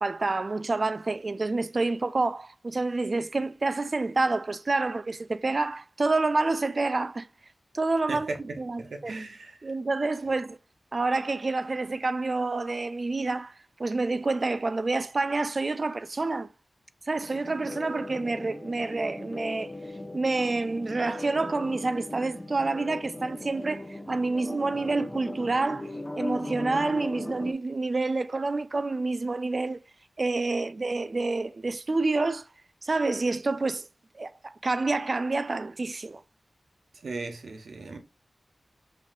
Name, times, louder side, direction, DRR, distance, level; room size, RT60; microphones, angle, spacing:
voice 1, 0.0-7.3 7.7-8.3 8.6-9.2 9.6-10.6 10.9-13.5 13.8-16.5 17.1-19.7 20.1-25.9 26.2-29.8 30.2-32.5 32.8-33.9 34.2-36.2, right 3 dB, 50° right, 0.3 m, -28 dB
voice 2, 8.1-9.7 37.0-38.0, right 3 dB, 80° right, 0.8 m, -37 dB
sound 1, 17.2-27.5, left 1 dB, 20° left, 0.8 m, -38 dB
5.5 x 2.7 x 2.3 m
cardioid pair, 60°, 0 cm